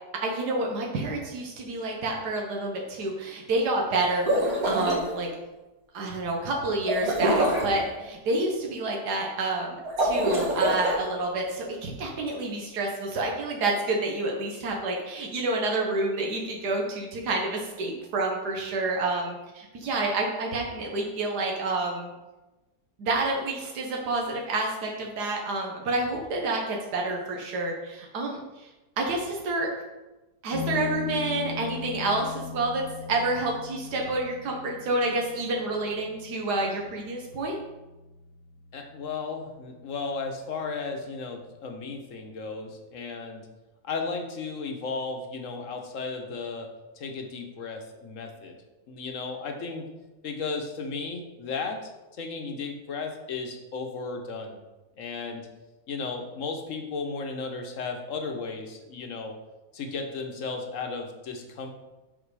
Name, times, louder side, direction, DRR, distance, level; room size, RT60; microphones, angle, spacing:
voice 1, 0.2-5.3 5.9-22.1 23.0-28.7 29.0-29.7 30.4-32.8 33.1-37.6, right 2 dB, 90° right, 0 dB, 1.7 m, -29 dB
sound 1, 4.1-5.0 6.8-7.7 9.8-10.9, right 1 dB, 65° right, 2.4 m, -24 dB
sound 2, 30.5-39.5, left 6 dB, 45° right, 1.4 m, -39 dB
voice 2, 38.7-43.5 43.8-46.7 47.0-48.6 48.9-49.9 50.2-51.9 52.2-54.6 55.0-55.5 55.9-59.3 59.7-61.7, left 4 dB, 55° left, 3 dB, 1.2 m, -34 dB
6.0 x 5.9 x 4.8 m, 1.1 s
omnidirectional pair, 1.7 m